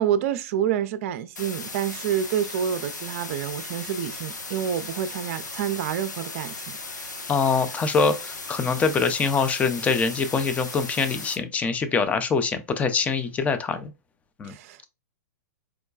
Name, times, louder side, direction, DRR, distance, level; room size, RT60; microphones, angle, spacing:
voice 1, 0.0-6.8 14.4-14.9, right 9 dB, 50° right, 0.4 m, -28 dB
sound 1, 1.4-11.4, left 3 dB, 85° left, 0.7 m, -37 dB
voice 2, 7.3-13.9 14.4-14.5, left 5 dB, 15° left, 0.4 m, -24 dB
4.6 x 2.2 x 2.2 m
figure-of-eight pair, 110°, 9 cm